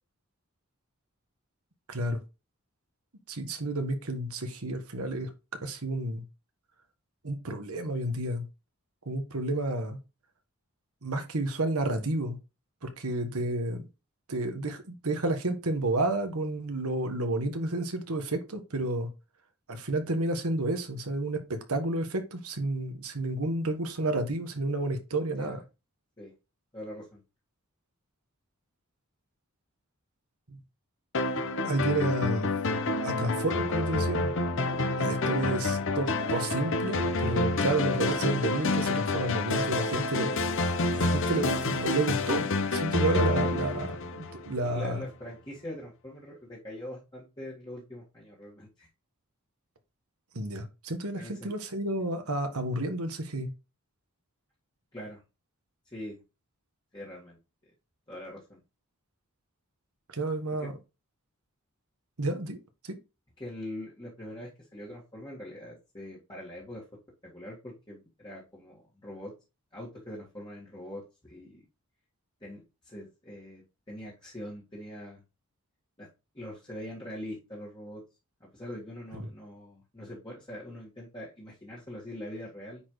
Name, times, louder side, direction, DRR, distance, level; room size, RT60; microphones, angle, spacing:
voice 1, 1.9-2.2 3.3-5.3 5.6-6.2 7.2-8.5 9.0-10.0 11.0-12.4 12.8-13.9 14.3-19.1 19.7-25.6 30.5-30.6 31.6-32.5 33.0-34.3 35.0-40.4 40.9-42.5 42.7-45.0 50.3-53.5 60.1-60.7 62.2-62.6 62.8-62.9 79.2-79.3, right 2 dB, 85° right, 7 dB, 1.4 m, -31 dB
voice 2, 26.7-27.2 35.4-35.6 44.6-48.9 51.1-51.5 54.9-55.2 55.9-56.2 56.9-57.4 58.1-58.6 60.6-60.7 63.4-66.8 67.2-69.3 69.7-71.6 72.4-75.2 76.0-76.1 76.3-78.0 78.4-82.8, left 1 dB, 20° left, -6 dB, 1.9 m, -43 dB
sound 1, 31.1-44.7, left 2 dB, 60° left, 1.0 m, -28 dB
9.5 x 4.3 x 3.2 m, 0.29 s
head